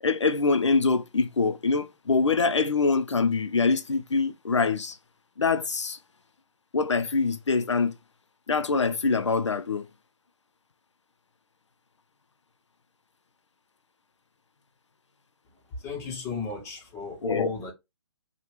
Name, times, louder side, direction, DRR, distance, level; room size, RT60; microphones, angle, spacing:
voice 1, 0.0-5.0 5.4-6.0 6.7-7.9 8.5-9.9 17.2-17.5, left 4 dB, 85° left, 0.5 m, -24 dB
voice 2, 15.7-17.7, left 4 dB, 15° left, 1.0 m, -34 dB
2.9 x 2.3 x 3.2 m
figure-of-eight pair, 135°, 15 cm